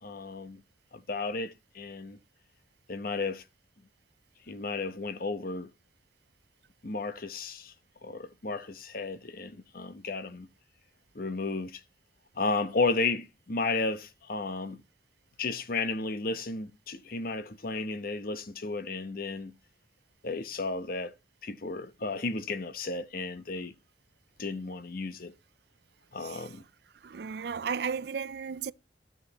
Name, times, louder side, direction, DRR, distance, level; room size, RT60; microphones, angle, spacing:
voice 1, 0.0-0.6 0.9-2.2 2.9-3.4 4.5-5.7 6.8-7.7 8.0-10.5 11.1-11.8 12.4-14.8 15.4-19.5 20.2-21.1 21.4-23.7 24.4-25.3 26.1-26.6, left 3 dB, 50° left, 0.9 m, -33 dB
voice 2, 27.0-28.7, right 6 dB, 60° right, 0.4 m, -34 dB
13.0 x 6.2 x 4.1 m
head